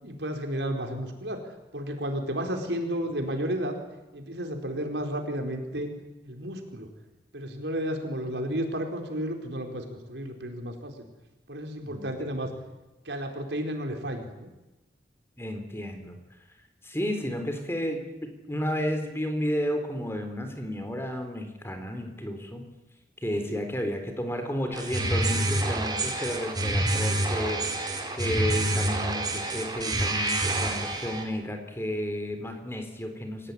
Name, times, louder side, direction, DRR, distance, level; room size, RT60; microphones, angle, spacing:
voice 1, 0.0-1.4 1.7-3.8 4.1-5.9 6.2-6.9 7.3-10.9 11.5-12.5 13.0-14.5 23.4-23.6, equal, 80° right, 4 dB, 4.7 m, -32 dB
voice 2, 11.9-12.4 15.4-16.2 16.8-22.7 23.2-27.9 28.2-33.5, equal, 15° left, 6 dB, 3.7 m, -32 dB
sound 1, 24.7-31.2, right 1 dB, 25° right, 4.4 m, -27 dB
26.5 x 17.5 x 9.8 m, 1.0 s
head